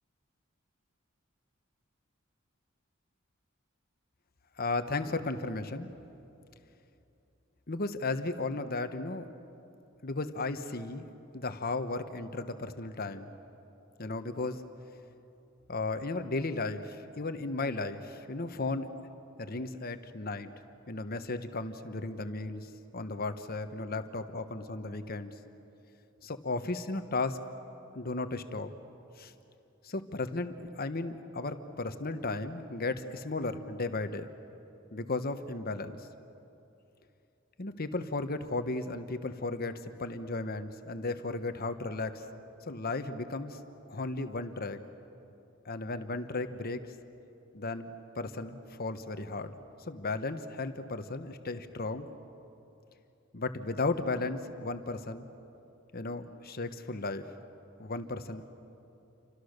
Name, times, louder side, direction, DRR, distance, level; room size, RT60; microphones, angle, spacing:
voice 1, 4.6-5.9 7.7-9.3 10.0-11.1 11.3-13.4 14.0-14.6 15.7-18.9 19.4-20.5 20.9-25.3 26.2-27.4 27.9-28.7 29.2-29.3 29.8-34.3 34.9-36.0 37.6-42.2 42.7-43.6 43.9-44.8 45.6-46.9 47.5-49.5 49.9-52.1 53.3-55.3 55.9-57.3 57.8-58.5, left 3 dB, 50° left, 9 dB, 1.2 m, -35 dB
29.0 x 25.0 x 6.7 m, 2.8 s
head